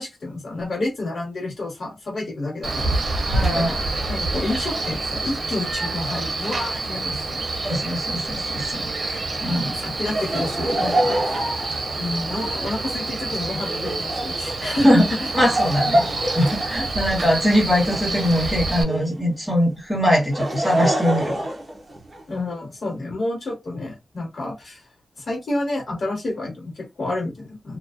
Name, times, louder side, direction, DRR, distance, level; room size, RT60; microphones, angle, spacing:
voice 1, 0.0-7.4 9.1-11.4 12.0-15.3 16.8-17.0 22.3-24.8 25.2-27.8, left 2 dB, 70° left, 1.0 m, -29 dB
Male speech man speaking, 2.6-18.8, right 2 dB, 75° right, 0.7 m, -27 dB
voice 2, 3.3-3.8 7.6-9.8 14.8-15.0 15.3-21.5, equal, 5° right, 1.3 m, -22 dB
Laughter, 10.1-19.2 20.0-22.4, right 1 dB, 35° right, 0.8 m, -27 dB
2.4 x 2.2 x 2.5 m
wide cardioid pair, 125°, 0 cm